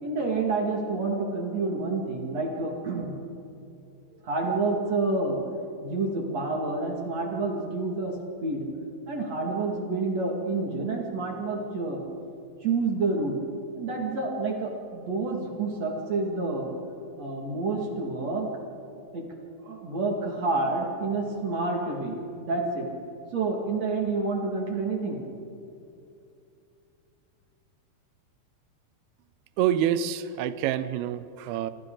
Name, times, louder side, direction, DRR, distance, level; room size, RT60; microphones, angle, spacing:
voice 1, 0.0-3.2 4.2-5.4 5.8-8.2 8.4-8.7 9.1-12.0 12.6-13.4 13.8-16.7 17.2-18.5 19.1-19.3 19.6-22.9 23.3-25.2, right 3 dB, 45° right, 0 dB, 2.9 m, -28 dB
voice 2, 29.6-31.7, right 10 dB, 75° right, 13 dB, 2.6 m, -27 dB
27.0 x 25.5 x 4.0 m, 2.6 s
omnidirectional pair, 4.8 m